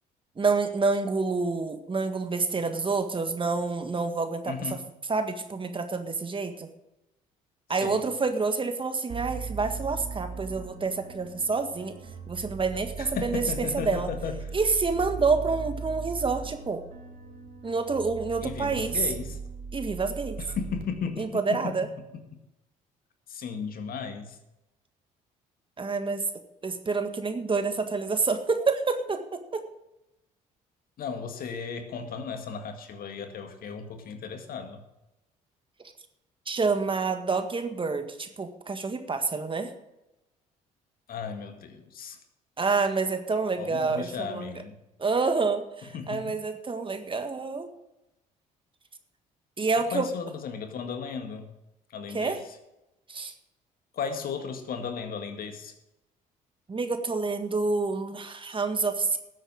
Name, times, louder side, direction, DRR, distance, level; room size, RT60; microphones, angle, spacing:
voice 1, 0.4-4.7 5.1-6.7 7.7-11.9 12.3-13.4 13.7-14.1 14.5-16.8 17.6-19.0 19.7-20.4 21.2-21.9 25.8-26.2 26.6-29.6 36.5-39.7 42.6-44.6 45.0-47.7 49.6-50.1 52.1-52.4 53.1-53.3 56.7-59.2, right 4 dB, 30° right, 7 dB, 1.7 m, -28 dB
voice 2, 4.5-4.8 7.8-8.0 13.0-14.5 18.4-19.4 20.4-21.7 23.3-24.4 31.0-34.8 41.1-42.2 43.6-44.8 45.9-46.4 49.9-51.5 51.9-52.4 53.9-55.7, left 6 dB, 60° left, 6 dB, 1.9 m, -35 dB
sound 1, 9.1-20.8, right 5 dB, 55° right, 2.5 m, -39 dB
13.5 x 8.1 x 6.4 m, 0.93 s
hypercardioid pair, 60°, 17 cm